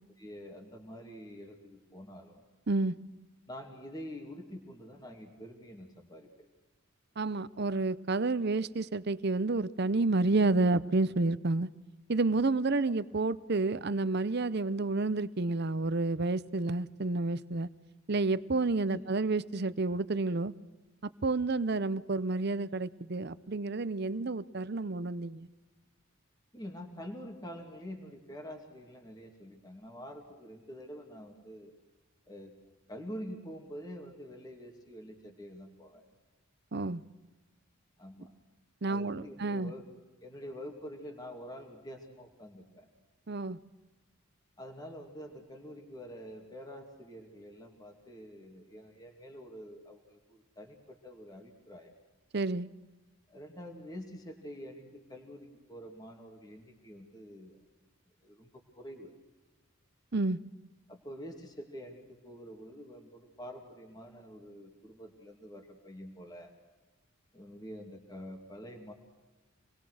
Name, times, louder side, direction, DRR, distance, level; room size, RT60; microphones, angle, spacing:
voice 1, 0.2-2.4 3.5-6.5 18.9-19.0 26.5-31.7 32.3-32.5 32.9-36.0 38.0-38.3 38.9-39.9 40.2-42.9 44.6-51.9 53.3-57.6 58.2-59.1 60.9-66.5 67.3-68.9, equal, 20° left, 2.6 m, -46 dB
voice 2, 7.2-11.7 12.1-17.7 18.1-20.5 21.2-25.5 36.7-37.0 38.8-39.7 43.3-43.6 52.3-52.7 60.1-60.4, right 3 dB, 50° right, 0.7 m, -30 dB
27.0 x 20.5 x 6.4 m
head